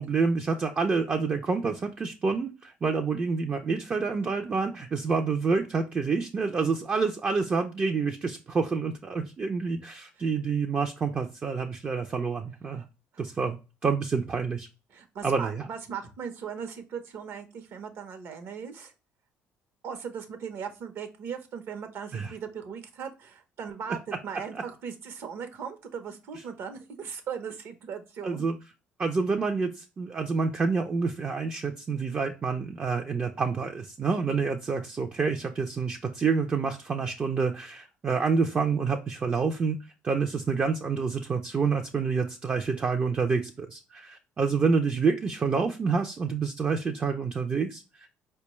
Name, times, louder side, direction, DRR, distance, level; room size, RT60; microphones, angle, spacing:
voice 1, 0.0-12.8 13.2-14.7 15.2-15.7 22.1-22.3 24.5-24.6 28.2-28.6 29.0-48.1, right 5 dB, 30° right, 4 dB, 0.4 m, -28 dB
voice 2, 14.9-18.9 19.8-28.4, right 7 dB, 65° right, 7 dB, 0.7 m, -38 dB
4.5 x 2.2 x 3.0 m, 0.30 s
cardioid pair, 95°, 4 cm